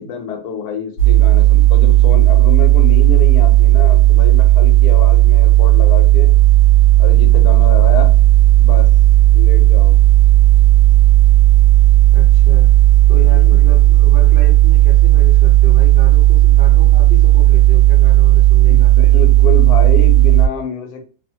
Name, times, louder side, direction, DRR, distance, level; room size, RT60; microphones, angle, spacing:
voice 1, 0.0-6.3 7.0-8.1 8.6-8.9 9.3-10.0 13.2-13.7 18.7-21.0, left 5 dB, 80° left, 5 dB, 1.2 m, -26 dB
sound 1, 1.0-20.5, right 16 dB, 60° left, 1.0 m, -10 dB
voice 2, 12.1-12.7 13.1-18.9, left 1 dB, 55° right, -4 dB, 0.6 m, -31 dB
2.8 x 2.0 x 2.8 m, 0.38 s
omnidirectional pair, 1.7 m